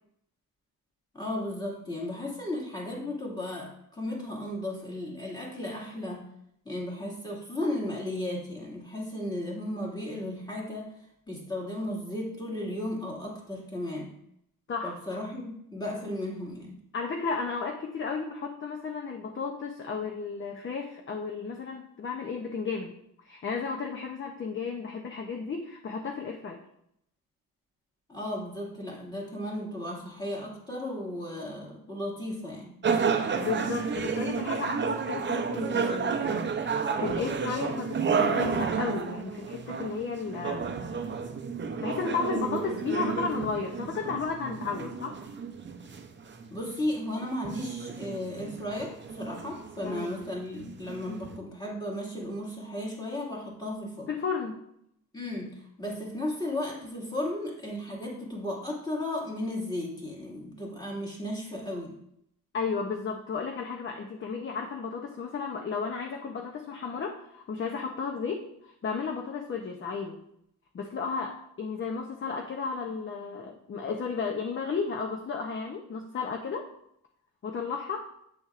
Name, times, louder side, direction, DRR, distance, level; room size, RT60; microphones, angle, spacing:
voice 1, 1.1-6.2 6.6-10.9 11.3-14.1 14.8-16.8 28.1-32.7 46.5-54.1 55.1-61.9, left 1 dB, 10° left, -4 dB, 2.0 m, -35 dB
voice 2, 14.7-15.2 16.9-22.9 23.2-26.6 33.4-36.3 37.0-40.7 41.8-45.2 49.8-50.1 54.1-54.6 62.5-70.2 70.7-76.7 77.4-78.1, left 5 dB, 35° left, 2 dB, 0.7 m, -33 dB
sound 1, 32.8-51.4, right 5 dB, 30° right, 0.6 m, -31 dB
8.1 x 6.9 x 2.5 m, 0.75 s
cardioid pair, 130°, 37 cm